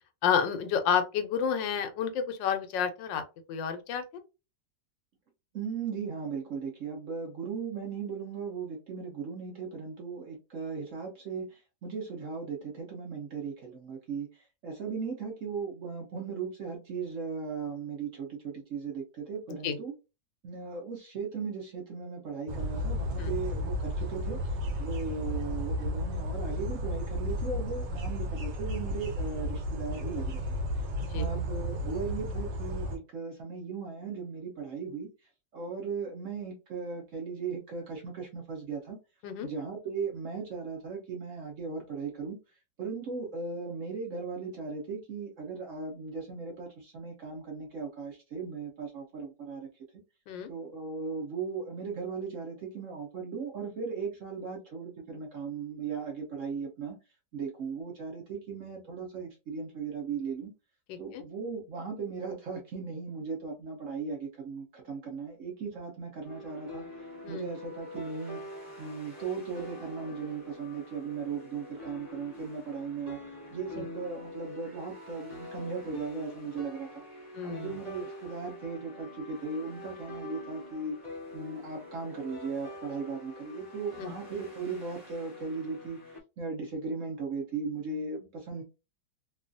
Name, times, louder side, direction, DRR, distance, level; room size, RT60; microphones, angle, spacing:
voice 1, 0.2-3.2 3.5-4.0 19.6-19.8 23.2-23.3 31.1-31.3 39.2-39.5 50.3-50.5 60.9-61.2 67.2-67.5 77.3-77.7 84.0-84.1, left 7 dB, 85° left, 1.3 m, -30 dB
voice 2, 5.5-19.9 20.4-24.4 24.8-35.1 35.5-39.0 39.4-42.4 42.8-49.7 50.5-57.0 57.3-60.5 61.0-66.8 67.3-68.4 68.8-73.2 73.5-77.0 77.4-80.9 81.3-88.6, right 5 dB, 65° right, 0.8 m, -37 dB
sound 1, 22.5-33.0, equal, 90° right, 1.4 m, -33 dB
sound 2, 66.2-86.2, left 1 dB, 30° right, 1.2 m, -45 dB
3.1 x 2.3 x 2.5 m
omnidirectional pair, 1.9 m